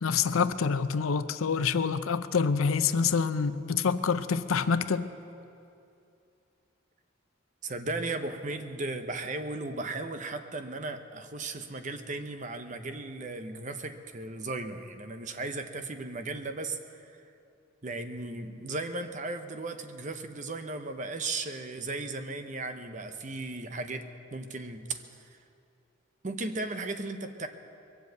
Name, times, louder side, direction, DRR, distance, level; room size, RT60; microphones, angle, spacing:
voice 1, 0.0-5.1, left 5 dB, 85° left, 0.6 m, -27 dB
voice 2, 7.6-17.2 17.8-25.3 26.2-27.5, right 2 dB, 35° right, 0.8 m, -36 dB
22.0 x 7.9 x 8.1 m
head